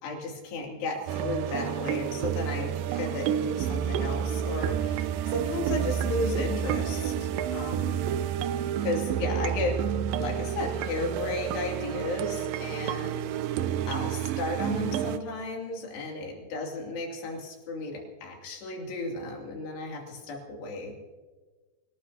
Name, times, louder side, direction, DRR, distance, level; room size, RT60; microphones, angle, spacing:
voice 1, 0.0-8.0 8.8-9.8 10.2-13.3 13.9-20.9, left 2 dB, 80° left, 0 dB, 4.9 m, -34 dB
sound 1, 1.1-15.2, right 9 dB, 80° right, 2.1 m, -30 dB
27.0 x 18.5 x 2.8 m, 1.3 s
omnidirectional pair, 4.8 m